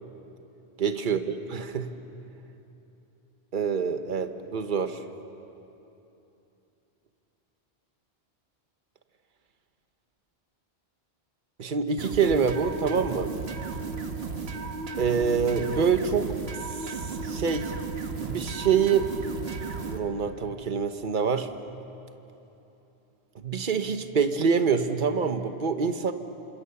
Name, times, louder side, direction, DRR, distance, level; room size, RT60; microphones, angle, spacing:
voice 1, 0.8-1.9 3.5-5.0 11.6-13.3 15.0-16.3 16.7-17.7 18.2-19.1 19.8-21.5 23.4-26.1, right 6 dB, 50° right, 8 dB, 1.2 m, -26 dB
sound 1, 12.0-20.0, right 4 dB, 70° right, 1.8 m, -34 dB
27.5 x 26.5 x 7.0 m, 3.0 s
omnidirectional pair, 1.1 m